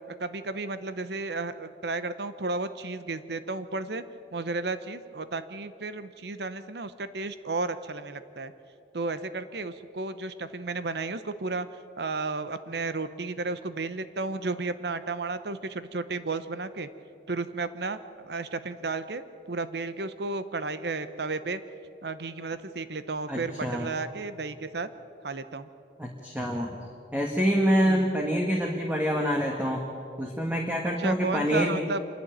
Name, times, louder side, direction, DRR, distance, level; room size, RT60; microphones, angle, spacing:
voice 1, 0.2-4.0 4.3-8.5 8.9-11.7 12.0-16.9 17.3-19.2 19.5-21.6 22.0-24.9 25.2-25.7 27.8-28.1 31.0-32.0, right 3 dB, 75° right, 12 dB, 0.8 m, -33 dB
voice 2, 23.3-23.9 26.0-26.7 27.1-29.8 30.2-31.7, equal, 10° right, 0 dB, 1.5 m, -26 dB
26.5 x 11.5 x 9.1 m, 2.6 s
head